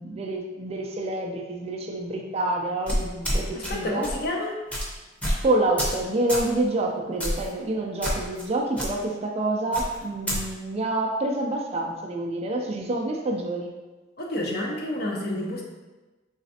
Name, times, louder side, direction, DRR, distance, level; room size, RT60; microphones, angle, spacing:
voice 1, 0.0-4.1 5.4-13.7, right 2 dB, 35° right, 1 dB, 0.4 m, -27 dB
sound 1, 2.9-3.7 4.0-4.2 4.7-4.9 5.2-5.4 5.8-6.0 6.3-6.5 7.2-7.5 8.0-8.5 8.8-8.9 9.7-10.4, equal, 5° left, 0.7 m, -27 dB
voice 2, 3.5-4.6 14.2-15.6, left 1 dB, 55° left, -1 dB, 0.7 m, -29 dB
4.0 x 3.2 x 2.7 m, 1.2 s
head